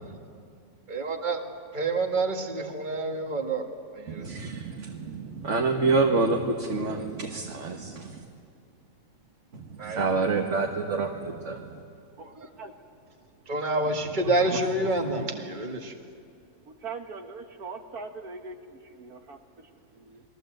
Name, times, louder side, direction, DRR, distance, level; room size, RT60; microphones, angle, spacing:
voice 1, 0.9-1.4 1.7-3.6 3.9-4.5 9.8-10.4 12.4-12.5 13.5-15.9, right 2 dB, 30° right, 4 dB, 1.9 m, -28 dB
voice 2, 4.1-8.2 9.5-11.8 14.5-14.6, right 3 dB, 50° right, 2 dB, 1.7 m, -28 dB
voice 3, 12.2-12.7 16.7-20.2, right 4 dB, 70° right, 4 dB, 1.8 m, -42 dB
29.0 x 21.5 x 7.9 m, 2.3 s
omnidirectional pair, 1.7 m